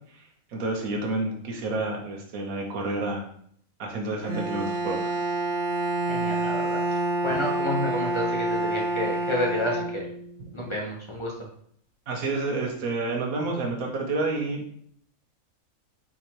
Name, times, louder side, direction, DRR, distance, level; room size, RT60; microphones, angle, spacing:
voice 1, 0.5-3.2 3.8-5.2 12.1-14.7, right 2 dB, 90° right, 1 dB, 1.2 m, -29 dB
Bowed string instrument, 4.2-10.4, right 2 dB, 45° right, 0.7 m, -28 dB
voice 2, 6.1-10.1 10.5-11.3, left 1 dB, 25° left, -3 dB, 0.8 m, -30 dB
3.9 x 2.8 x 4.5 m, 0.64 s
omnidirectional pair, 1.4 m